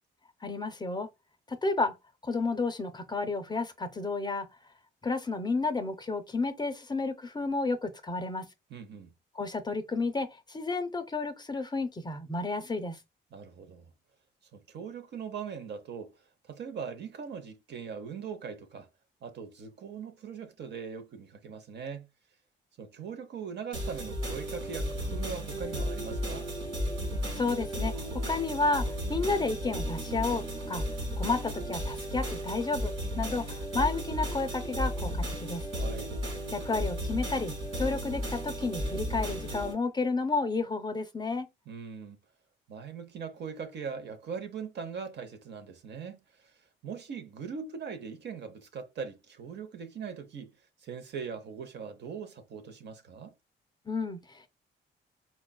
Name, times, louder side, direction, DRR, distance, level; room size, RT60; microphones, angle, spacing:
voice 1, 0.4-1.1 1.5-1.9 2.2-4.5 5.0-8.5 9.4-13.0 27.3-30.8 31.2-35.7 36.5-41.5 53.9-54.5, left 3 dB, 20° left, 0.5 m, -31 dB
voice 2, 8.7-9.1 13.3-13.9 14.5-16.1 16.4-18.9 19.2-22.1 22.8-26.5 35.7-36.2 41.7-42.2 42.7-46.5 46.8-50.5 50.8-53.3, right 6 dB, 60° right, 0.7 m, -40 dB
sound 1, 23.7-39.7, equal, 90° right, 2.1 m, -34 dB
4.1 x 2.3 x 2.2 m
cardioid pair, 90°, 20 cm